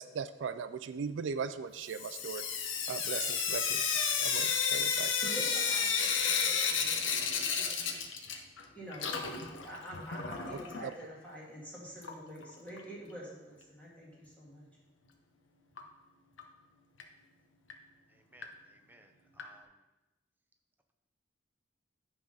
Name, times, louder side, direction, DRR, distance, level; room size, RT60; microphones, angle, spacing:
voice 1, 0.0-2.4 2.9-3.8 4.2-5.1 10.8-10.9, right 6 dB, 80° right, 12 dB, 0.4 m, -38 dB
Sink (filling or washing) / Drip, 1.9-8.6 8.9-10.8 12.0-12.1 12.4-12.5 12.8-12.9 15.8-15.9 16.4-16.5 17.0-17.1 17.7-17.8 18.4-18.5 19.4-19.5, left 6 dB, 85° left, 0.8 m, -32 dB
voice 2, 5.2-8.0 8.7-14.7, equal, 10° left, -7 dB, 1.8 m, -47 dB
voice 3, 18.1-19.7, right 1 dB, 10° right, 5 dB, 0.6 m, -60 dB
10.5 x 3.7 x 5.4 m, 1.1 s
head